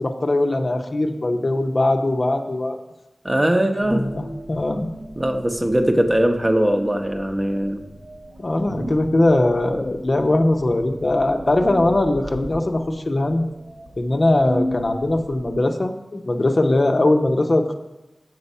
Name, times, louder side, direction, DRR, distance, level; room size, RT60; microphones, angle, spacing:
voice 1, 0.0-2.8 3.8-4.9 8.4-13.5 14.0-17.7, left 2 dB, 45° left, 5 dB, 0.7 m, -20 dB
voice 2, 3.2-4.1 5.2-7.8, right 1 dB, 20° right, 4 dB, 0.8 m, -20 dB
sound 1, 3.8-15.6, equal, 60° right, 1.1 m, -36 dB
7.0 x 6.1 x 5.4 m, 1.0 s
wide cardioid pair, 60°, 0 cm